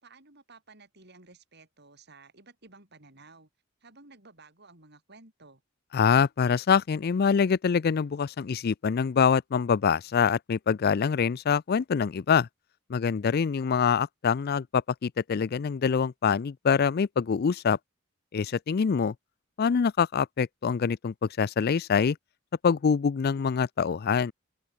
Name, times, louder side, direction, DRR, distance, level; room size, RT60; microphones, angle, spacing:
voice 1, 0.0-3.5 3.8-5.6, right 3 dB, 55° right, 6.3 m, -54 dB
voice 2, 5.9-12.5 12.9-17.8 18.3-19.1 19.6-22.2 22.6-24.3, left 6 dB, 50° left, 0.4 m, -25 dB
open air
head